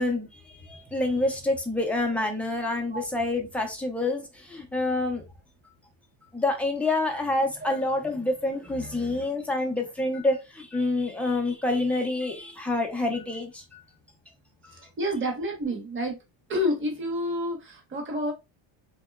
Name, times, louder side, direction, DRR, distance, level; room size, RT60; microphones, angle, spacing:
voice 1, 0.0-5.2 6.3-13.8 14.6-14.9, left 2 dB, 5° left, 0.4 m, -27 dB
voice 2, 14.7-16.2 16.5-18.3, left 1 dB, 25° right, 0.9 m, -29 dB
2.8 x 2.2 x 2.2 m
cardioid pair, 115°, 49 cm